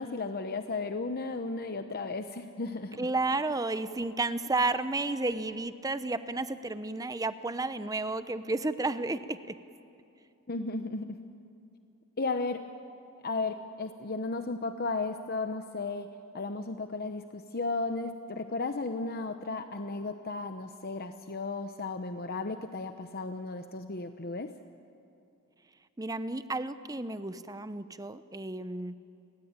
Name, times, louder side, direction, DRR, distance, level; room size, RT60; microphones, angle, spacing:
voice 1, 0.0-3.0 10.5-11.1 12.2-12.6 13.2-16.1 16.3-24.5, left 3 dB, 45° left, 8 dB, 0.9 m, -34 dB
voice 2, 3.0-9.6 26.0-28.9, right 2 dB, 15° right, 12 dB, 0.8 m, -32 dB
29.5 x 22.0 x 8.9 m, 2.7 s
head